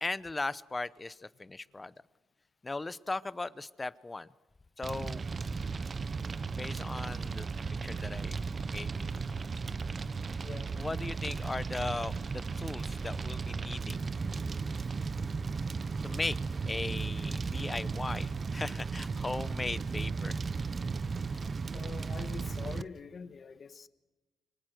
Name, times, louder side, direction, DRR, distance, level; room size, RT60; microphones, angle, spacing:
voice 1, 0.0-1.9 2.6-4.3 4.8-5.2 6.5-7.5 7.8-8.4 8.7-9.3 10.8-14.8 16.0-16.4 16.7-20.4, left 3 dB, 20° left, 0.8 m, -38 dB
Fire, 4.8-22.8, right 4 dB, 35° right, 0.8 m, -35 dB
voice 2, 10.4-10.7 21.4-23.9, left 5 dB, 45° left, 1.4 m, -45 dB
25.0 x 25.0 x 6.4 m
cardioid pair, 90°, 0 cm